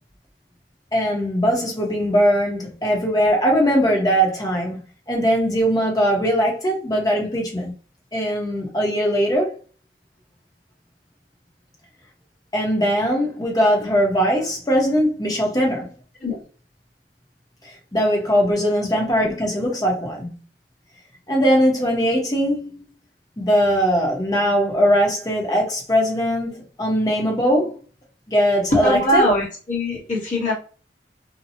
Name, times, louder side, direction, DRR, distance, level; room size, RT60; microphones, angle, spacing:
voice 1, 0.9-4.8 5.1-7.7 8.1-9.6 12.5-15.9 17.6-20.3 21.3-22.8 23.4-27.8 28.3-29.3, equal, 20° left, 0.9 m, -20 dB
voice 2, 28.7-30.5, left 1 dB, 45° left, 1.3 m, -21 dB
2.8 x 2.2 x 2.6 m
head